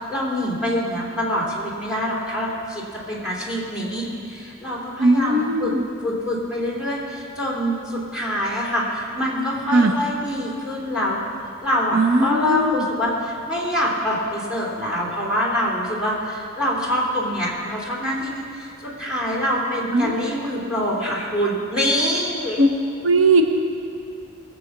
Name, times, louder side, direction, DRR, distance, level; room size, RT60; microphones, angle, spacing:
voice 1, 0.0-2.8 3.1-5.7 6.0-11.2 11.6-22.6, equal, 5° right, -4 dB, 2.9 m, -25 dB
voice 2, 5.0-5.8 9.7-9.9 11.9-12.7 19.9-20.1 22.6-22.7 23.0-23.4, right 2 dB, 85° right, 5 dB, 1.0 m, -18 dB
20.0 x 7.9 x 6.1 m, 2.7 s
head